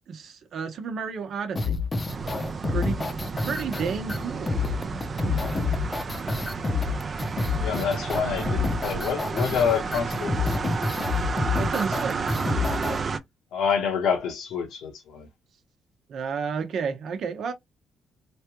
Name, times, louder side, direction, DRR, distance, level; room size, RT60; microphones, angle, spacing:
voice 1, 0.1-1.8 2.7-3.1 3.4-4.6 5.2-5.4 6.3-6.4 11.6-12.3 16.1-17.5, right 6 dB, 65° right, 0.8 m, -31 dB
sound 1, 1.6-13.0, left 4 dB, 25° left, 0.7 m, -28 dB
sound 2, 2.1-13.2, right 4 dB, 40° right, 0.5 m, -32 dB
voice 2, 7.6-10.6 13.5-15.3, left 7 dB, 80° left, 1.1 m, -27 dB
3.3 x 2.3 x 2.9 m
cardioid pair, 90°, 0 cm